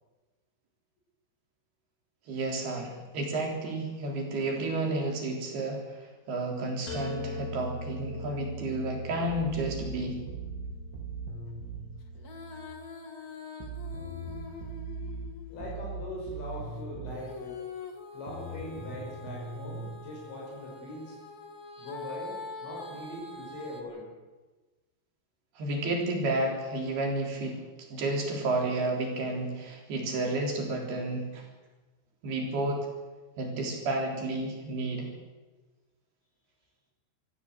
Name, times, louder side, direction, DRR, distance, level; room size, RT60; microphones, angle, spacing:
voice 1, 2.3-10.2 25.6-27.6 27.9-31.5 32.2-32.9 33.4-35.1, right 2 dB, 55° right, 1 dB, 5.4 m, -31 dB
sound 1, 6.9-12.7, equal, 35° left, 5.8 m, -41 dB
sound 2, 9.3-11.9 13.6-17.2 18.3-19.9, right 3 dB, 80° right, 6.2 m, -39 dB
Female singing, 12.1-15.9 17.1-23.8, left 4 dB, 85° left, 0.8 m, -44 dB
voice 2, 15.5-17.6 18.1-21.2 21.8-24.1, left 1 dB, 60° left, -3 dB, 7.8 m, -41 dB
26.0 x 15.0 x 8.1 m, 1.2 s
omnidirectional pair, 5.8 m